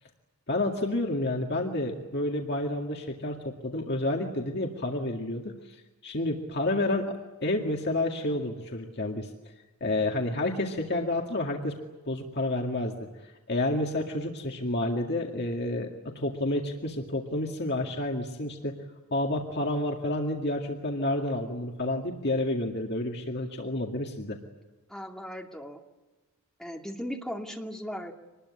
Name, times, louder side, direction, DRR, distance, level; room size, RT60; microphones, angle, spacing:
voice 1, 0.5-5.8 6.0-7.1 7.4-9.3 9.8-11.8 12.1-18.7 19.1-24.4, left 1 dB, 50° left, 1 dB, 2.1 m, -30 dB
voice 2, 24.9-25.8 26.6-28.1, equal, ahead, 1 dB, 2.4 m, -37 dB
26.0 x 20.5 x 9.7 m, 1.2 s
head